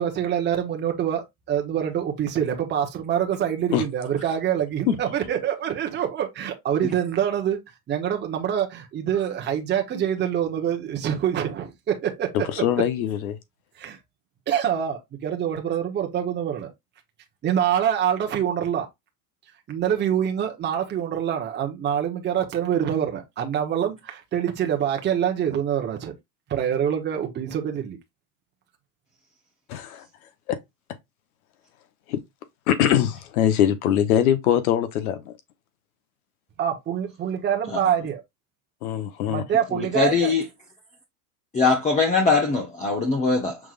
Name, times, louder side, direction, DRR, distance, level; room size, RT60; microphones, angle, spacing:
voice 1, 0.0-7.6 7.9-12.4 13.8-14.0 14.5-16.7 17.4-18.9 19.7-26.1 26.5-28.0 36.6-38.2 39.3-40.3, right 9 dB, 25° right, 1.0 m, -25 dB
voice 2, 12.5-13.4 29.7-30.0 30.5-30.6 32.1-32.2 32.7-35.3 38.8-39.4, left 10 dB, 90° left, 1.1 m, -22 dB
voice 3, 39.7-40.4 41.5-43.6, left 4 dB, 15° left, 1.0 m, -21 dB
6.0 x 3.5 x 2.5 m
supercardioid pair, 135°, 42 cm